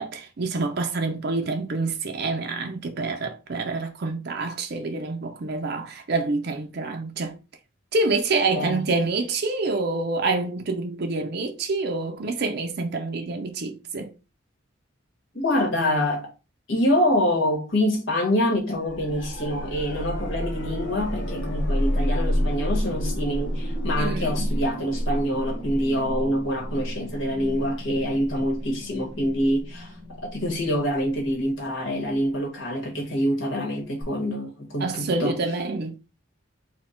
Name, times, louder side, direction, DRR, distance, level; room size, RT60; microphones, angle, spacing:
voice 1, 0.0-7.4 7.9-14.1 24.0-24.5 34.8-35.9, right 3 dB, 55° right, 0.5 m, -27 dB
voice 2, 15.3-16.3 16.7-29.9 30.3-35.4, equal, 80° left, 1.5 m, -26 dB
sound 1, 18.8-31.7 34.0-34.1, equal, 65° left, 1.6 m, -30 dB
4.2 x 2.3 x 4.3 m
head